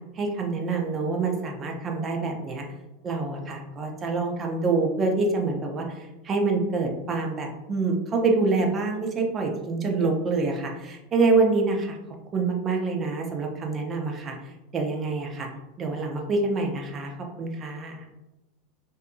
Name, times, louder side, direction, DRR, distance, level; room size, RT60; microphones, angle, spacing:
voice 1, 0.2-2.6 3.0-12.0 12.3-14.3 14.7-15.5 15.8-17.1 17.4-18.1, right 3 dB, 30° right, 2 dB, 0.5 m, -26 dB
2.6 x 2.5 x 2.2 m, 0.99 s
supercardioid pair, 115°, 0 cm